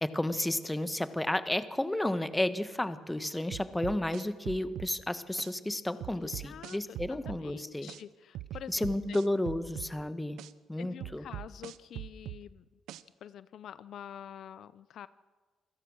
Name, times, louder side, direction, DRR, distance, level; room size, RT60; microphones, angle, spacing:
voice 1, 0.0-7.9 8.7-10.4 10.7-11.2, left 1 dB, 10° left, 11 dB, 1.3 m, -32 dB
sound 1, 3.5-4.9 5.4-5.5 6.0-7.4 7.9-8.0 8.3-9.9 10.4-10.5 11.0-12.4 12.9-13.0, right 14 dB, 90° right, 0.7 m, -41 dB
voice 2, 6.2-8.9 10.8-12.6 13.2-15.1, left 9 dB, 70° left, 16 dB, 0.6 m, -47 dB
27.5 x 17.0 x 6.4 m, 1.3 s
cardioid pair, 90°, 0 cm